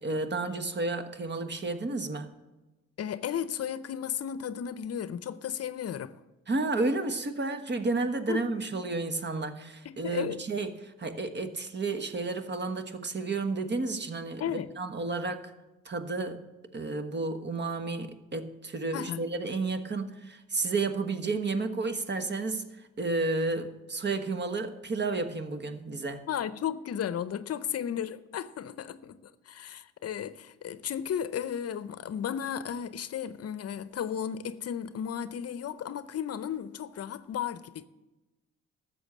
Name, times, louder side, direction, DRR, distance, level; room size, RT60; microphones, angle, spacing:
voice 1, 0.0-2.3 6.5-15.5 15.8-16.4 16.7-26.3, right 3 dB, 35° right, 1.3 m, -32 dB
voice 2, 3.0-6.1 8.3-8.6 9.8-10.4 14.4-14.7 18.9-19.2 26.3-37.9, left 9 dB, 55° left, 0.7 m, -34 dB
13.0 x 7.2 x 7.3 m
cardioid pair, 90°, 30 cm